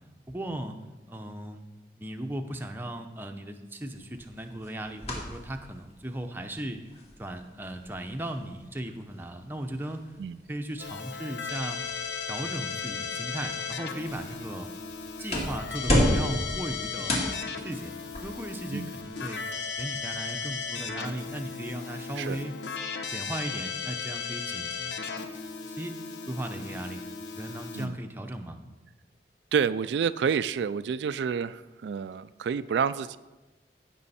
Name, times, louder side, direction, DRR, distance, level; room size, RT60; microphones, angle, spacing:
voice 1, 0.3-0.8 1.1-1.6 2.0-6.8 7.2-10.0 10.5-11.8 12.3-14.7 15.2-19.4 19.8-22.5 23.1-25.1 25.5-25.9 26.3-28.6, right 1 dB, 10° right, 5 dB, 0.7 m, -37 dB
sound 1, 3.9-21.4, equal, 35° left, 2.0 m, -35 dB
Keyboard (musical), 10.8-27.9, left 5 dB, 90° left, 0.9 m, -36 dB
voice 2, 29.5-33.2, right 6 dB, 80° right, 14 dB, 0.3 m, -29 dB
15.5 x 6.2 x 4.2 m, 1.1 s
head